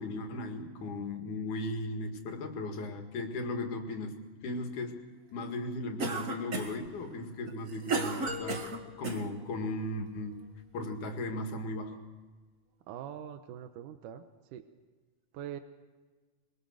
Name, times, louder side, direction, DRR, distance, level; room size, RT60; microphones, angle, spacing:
voice 1, 0.0-5.1 5.3-8.6 9.0-10.4 10.7-12.0, left 2 dB, 70° left, 5 dB, 3.3 m, -37 dB
Cough, 6.0-6.9 7.5-9.2, right 3 dB, 40° right, 1.2 m, -33 dB
sound 1, 8.3-10.3, left 4 dB, 40° left, 3.1 m, -45 dB
voice 2, 12.9-14.2 14.5-14.6 15.3-15.6, right 10 dB, 80° right, 8 dB, 2.4 m, -42 dB
23.5 x 23.0 x 6.5 m, 1.3 s
omnidirectional pair, 3.8 m